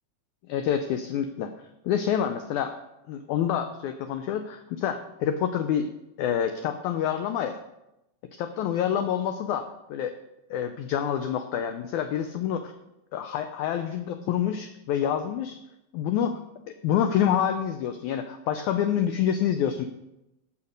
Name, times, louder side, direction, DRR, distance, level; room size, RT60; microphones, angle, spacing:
voice 1, 0.5-1.5 1.8-2.8 3.1-5.9 6.2-7.6 8.3-10.2 10.5-12.7 13.1-15.6 15.9-16.4 16.7-19.9, left 9 dB, 80° left, 7 dB, 1.8 m, -27 dB
14.5 x 5.7 x 5.2 m, 0.91 s
omnidirectional pair, 4.0 m